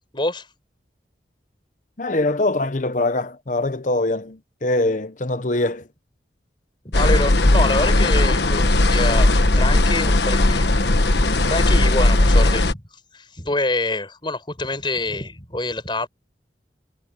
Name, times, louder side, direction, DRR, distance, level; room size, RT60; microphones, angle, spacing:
voice 1, 0.1-0.5 6.8-12.8 13.1-16.1, left 2 dB, 25° left, 5.3 m, -26 dB
voice 2, 2.0-5.8, left 2 dB, 45° left, 0.9 m, -23 dB
sound 1, 6.9-12.7, left 2 dB, 75° left, 1.3 m, -17 dB
head